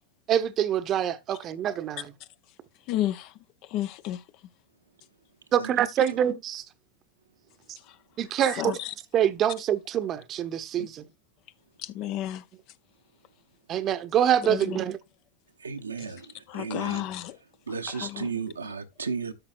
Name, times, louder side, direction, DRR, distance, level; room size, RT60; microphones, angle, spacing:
voice 1, 0.3-2.1 5.5-6.6 8.2-8.7 9.1-11.0 13.7-15.0, right 10 dB, 30° right, 0.9 m, -25 dB
voice 2, 2.9-3.3 3.6-4.2 7.9-8.0 8.6-8.9 11.8-12.4 14.4-14.8 16.0-16.1 16.5-17.4 17.9-18.3, left 13 dB, 40° left, 0.6 m, -32 dB
voice 3, 15.6-17.0 17.7-19.3, right 5 dB, 75° right, 1.0 m, -34 dB
12.5 x 5.6 x 2.5 m
figure-of-eight pair, 90°, 0 cm